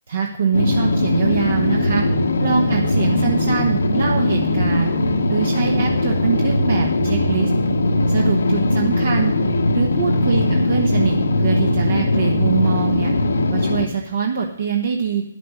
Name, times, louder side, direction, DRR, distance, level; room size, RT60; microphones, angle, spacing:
voice 1, 0.1-2.0 2.4-4.9 5.3-7.5 8.1-9.4 9.7-13.1 13.5-15.2, right 6 dB, 65° right, 2 dB, 1.2 m, -23 dB
sound 1, 0.5-13.9, left 2 dB, 85° left, 1.0 m, -19 dB
10.0 x 6.8 x 6.4 m, 0.79 s
hypercardioid pair, 145°, 0 cm